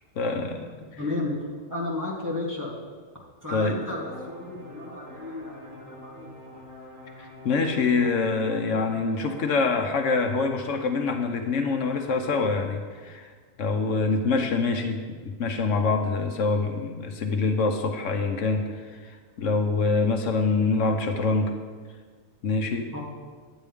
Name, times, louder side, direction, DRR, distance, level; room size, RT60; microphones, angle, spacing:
voice 1, 0.2-1.0 3.5-3.8 7.2-13.3 13.6-21.5 22.4-22.9, left 4 dB, 80° left, 5 dB, 1.1 m, -25 dB
voice 2, 1.0-1.4 1.7-2.7 3.4-6.3 22.9-23.0, left 2 dB, 15° right, -4 dB, 1.8 m, -33 dB
sound 1, 3.9-9.7, left 1 dB, 40° right, 2.4 m, -46 dB
9.9 x 8.9 x 3.5 m, 1.5 s
omnidirectional pair, 1.3 m